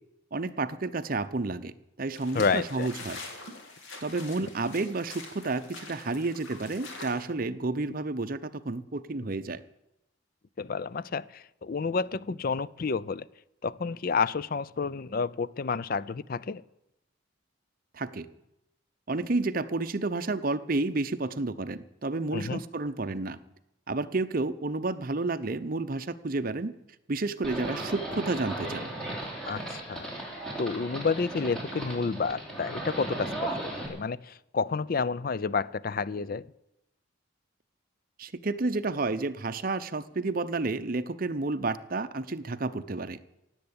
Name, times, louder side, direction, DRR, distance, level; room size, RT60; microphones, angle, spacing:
voice 1, 0.3-1.7 2.0-3.2 4.0-9.6 17.9-18.3 19.1-23.4 23.9-26.7 27.1-28.9 38.2-43.2, right 3 dB, 45° right, 0.7 m, -31 dB
sound 1, 2.1-7.3, left 3 dB, 85° left, 3.1 m, -44 dB
voice 2, 2.3-2.9 10.6-13.3 13.6-16.6 22.3-22.6 29.5-30.1 30.6-36.4, left 5 dB, 45° left, 0.4 m, -30 dB
Livestock farm animals working animals, 27.4-33.9, right 1 dB, 5° left, 3.6 m, -36 dB
17.5 x 8.0 x 8.7 m
head